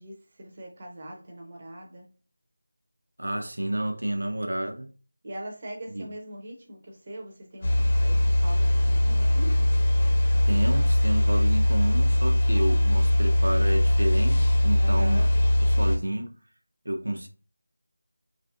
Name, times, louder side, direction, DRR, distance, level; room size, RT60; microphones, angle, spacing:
voice 1, 0.0-2.1 5.2-9.6 14.8-15.3, right 1 dB, 35° right, 0.8 m, -41 dB
voice 2, 3.2-4.9 5.9-6.1 10.5-15.2 15.7-16.3 16.8-17.3, right 1 dB, 75° right, 0.6 m, -30 dB
sound 1, 7.6-16.0, left 1 dB, 35° left, 0.8 m, -21 dB
3.2 x 2.5 x 2.5 m
figure-of-eight pair, 170°, 0 cm